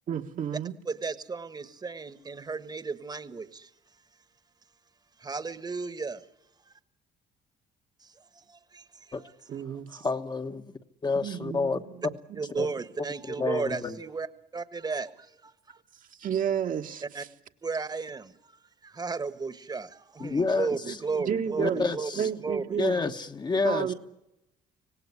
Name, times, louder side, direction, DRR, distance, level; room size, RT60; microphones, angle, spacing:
voice 1, 0.1-0.7 9.5-10.0 11.1-11.8 12.6-12.7 16.2-17.0 20.9-21.9 22.2-23.0 23.6-23.9, right 8 dB, 50° right, 1.6 m, -31 dB
voice 2, 0.8-3.7 5.2-6.3 6.7-6.8 8.0-9.1 12.3-14.3 14.5-15.8 17.0-17.2 17.6-22.8, right 4 dB, 25° right, 1.5 m, -34 dB
voice 3, 9.9-10.7 11.0-11.8 12.6-12.7 13.4-14.0 20.2-21.0 21.6-22.3 22.8-23.9, left 4 dB, 25° left, 1.2 m, -29 dB
26.0 x 18.0 x 9.8 m
cardioid pair, 110°, 17 cm